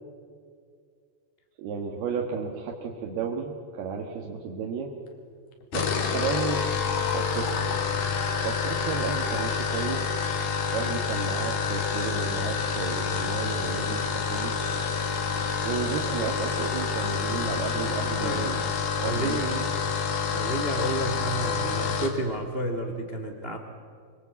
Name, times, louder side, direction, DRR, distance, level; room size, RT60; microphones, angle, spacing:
voice 1, 1.6-4.9 5.7-6.6 7.1-7.7 8.4-10.1 10.7-14.5 15.6-18.6 19.0-19.7, right 6 dB, 70° right, 0 dB, 3.3 m, -33 dB
sound 1, 5.6-22.2, left 5 dB, 65° left, 3.9 m, -28 dB
voice 2, 18.2-19.5 20.2-23.6, right 1 dB, 90° right, 4 dB, 0.5 m, -31 dB
25.5 x 22.5 x 8.3 m, 2.2 s
omnidirectional pair, 4.9 m